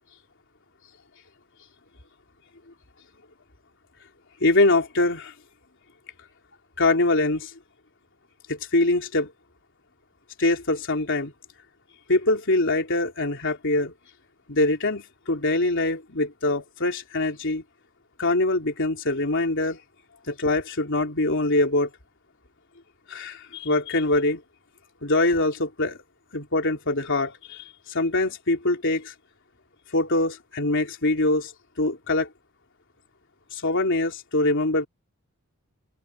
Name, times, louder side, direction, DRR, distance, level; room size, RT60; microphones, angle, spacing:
voice 1, 4.4-5.3 6.8-7.5 8.5-9.3 10.4-11.3 12.1-13.9 14.5-17.6 18.2-19.8 20.3-21.9 23.1-24.4 25.0-26.0 26.3-29.1 29.9-31.5 31.8-32.3 33.5-34.9, left 2 dB, 60° left, 3.6 m, -23 dB
open air
head